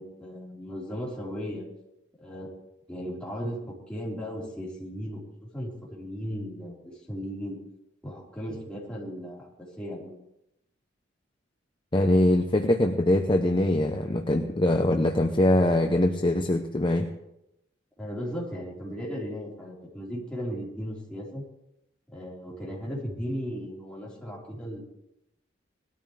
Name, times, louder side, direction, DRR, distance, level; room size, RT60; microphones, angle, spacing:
voice 1, 0.0-1.7 2.2-2.5 2.9-5.2 5.5-7.6 8.0-9.5 9.8-10.1 18.0-21.4 22.1-24.8, equal, 5° left, -7 dB, 4.4 m, -36 dB
voice 2, 11.9-17.1, left 1 dB, 25° left, 4 dB, 0.8 m, -23 dB
20.0 x 13.0 x 3.4 m, 0.84 s
head